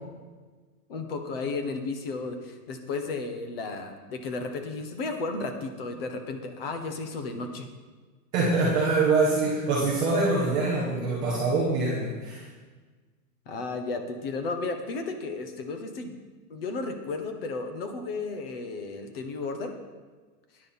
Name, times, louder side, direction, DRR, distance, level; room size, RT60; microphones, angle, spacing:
voice 1, 0.9-7.7 12.4-12.5 13.5-16.2 16.5-19.7, left 3 dB, 40° left, 6 dB, 1.2 m, -33 dB
voice 2, 8.3-12.4, right 3 dB, 10° right, -7 dB, 0.6 m, -24 dB
12.5 x 10.0 x 4.2 m, 1.4 s
supercardioid pair, 180°, 46 cm